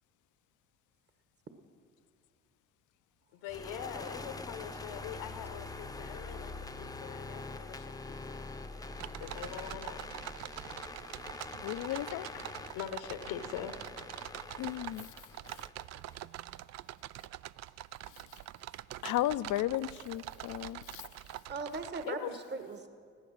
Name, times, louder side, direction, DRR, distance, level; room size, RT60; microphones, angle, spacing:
voice 1, 3.3-8.5 9.2-10.1 10.3-10.4 12.1-12.5 12.7-13.9 22.1-22.3, left 9 dB, 75° left, 1.1 m, -43 dB
sound 1, 3.5-16.3, left 3 dB, 10° left, 0.8 m, -45 dB
sound 2, 8.9-22.0, right 14 dB, 45° right, 0.4 m, -45 dB
voice 2, 11.6-12.3 14.6-15.1 19.0-21.1, left 14 dB, 55° left, 0.5 m, -34 dB
voice 3, 21.0-22.9, right 4 dB, 25° right, 1.3 m, -40 dB
15.0 x 11.5 x 6.5 m
hypercardioid pair, 65°, 37 cm